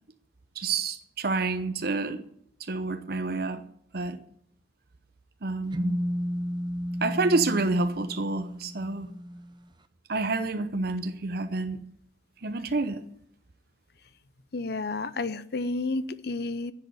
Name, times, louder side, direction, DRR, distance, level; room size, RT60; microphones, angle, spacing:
voice 1, 0.5-2.2 2.6-3.6 3.9-4.2 5.4-6.0 7.0-9.1 10.1-11.8 12.4-13.0, right 3 dB, 60° right, 0.8 m, -28 dB
sound 1, 5.7-9.6, equal, 25° right, 0.7 m, -33 dB
voice 2, 14.5-16.7, left 3 dB, 60° left, 0.7 m, -31 dB
10.5 x 7.9 x 9.3 m
head